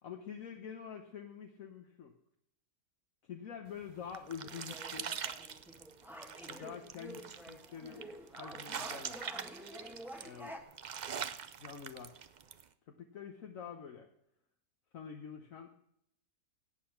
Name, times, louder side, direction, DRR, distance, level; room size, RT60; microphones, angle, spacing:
voice 1, 0.0-2.1 3.3-5.2 6.5-9.2 10.2-10.6 11.6-12.2 12.9-14.1 14.9-15.7, left 7 dB, 65° left, 3 dB, 1.4 m, -47 dB
sound 1, 3.7-12.6, right 7 dB, 65° right, 0.4 m, -44 dB
sound 2, 4.3-10.6, equal, ahead, 1.2 m, -49 dB
17.5 x 8.5 x 5.8 m, 0.71 s
omnidirectional pair, 1.6 m